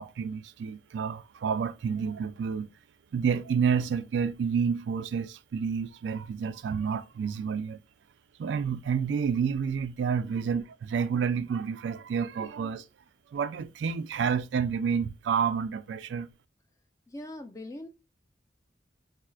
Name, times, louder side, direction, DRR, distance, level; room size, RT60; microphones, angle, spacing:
voice 1, 0.0-2.7 3.1-7.8 8.4-12.8 13.3-16.3, right 6 dB, 80° right, 0.3 m, -29 dB
voice 2, 17.1-17.9, left 1 dB, 20° left, 0.4 m, -41 dB
4.3 x 2.1 x 2.3 m
head